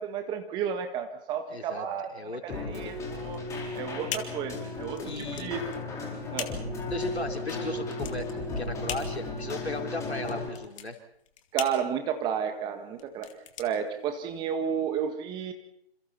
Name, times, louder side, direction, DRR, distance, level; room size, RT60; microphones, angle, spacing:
voice 1, 0.0-3.4 3.7-5.6 6.3-6.5 11.5-13.3 13.6-15.5, right 8 dB, 15° right, 6 dB, 1.7 m, -32 dB
voice 2, 1.5-1.9 2.1-3.0 5.0-5.5 6.9-11.0, left 2 dB, 85° left, 3 dB, 4.4 m, -36 dB
Keyboard (musical), 2.5-10.5, left 2 dB, 10° left, 4.5 m, -35 dB
sound 1, 3.2-14.6, left 9 dB, 30° left, 2.4 m, -42 dB
28.0 x 28.0 x 4.4 m, 0.74 s
figure-of-eight pair, 140°, 32 cm